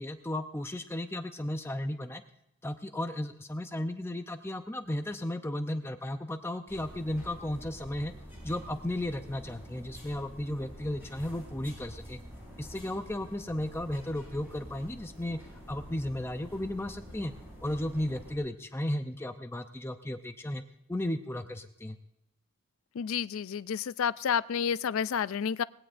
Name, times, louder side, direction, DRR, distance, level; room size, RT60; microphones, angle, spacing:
voice 1, 0.0-2.2 2.6-8.1 8.4-12.2 12.6-15.4 15.7-17.3 17.6-20.6 20.9-22.0, left 1 dB, 10° left, 7 dB, 0.5 m, -34 dB
sound 1, 6.7-18.4, equal, 10° right, 6.9 m, -48 dB
voice 2, 22.9-25.6, left 7 dB, 75° left, 17 dB, 0.4 m, -30 dB
20.0 x 16.5 x 2.5 m, 0.81 s
head